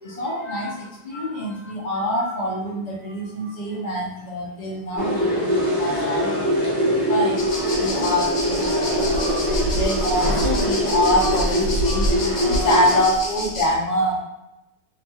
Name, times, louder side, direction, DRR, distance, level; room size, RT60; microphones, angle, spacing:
voice 1, 0.0-14.2, equal, 45° left, -4 dB, 0.5 m, -26 dB
sound 1, 5.0-13.0, equal, 40° right, 0.7 m, -23 dB
sound 2, 7.4-13.7, equal, 75° left, 1.1 m, -27 dB
2.9 x 2.7 x 2.3 m, 0.90 s
omnidirectional pair, 1.6 m